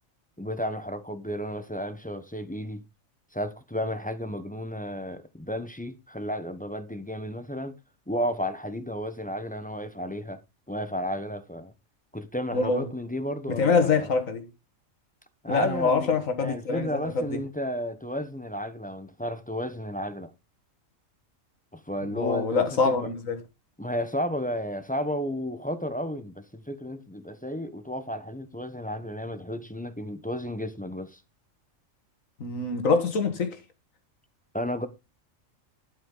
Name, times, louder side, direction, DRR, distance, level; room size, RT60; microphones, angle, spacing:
voice 1, 0.4-2.8 3.3-7.8 8.1-10.4 10.7-11.7 12.1-14.1 15.4-20.3 21.7-23.1 23.8-31.2 34.5-34.9, equal, 10° left, 0.8 m, -33 dB
voice 2, 12.5-12.9 13.5-14.4 15.5-17.4 22.1-23.4 32.4-33.6, left 4 dB, 85° left, 2.0 m, -25 dB
12.0 x 5.7 x 3.8 m
omnidirectional pair, 1.3 m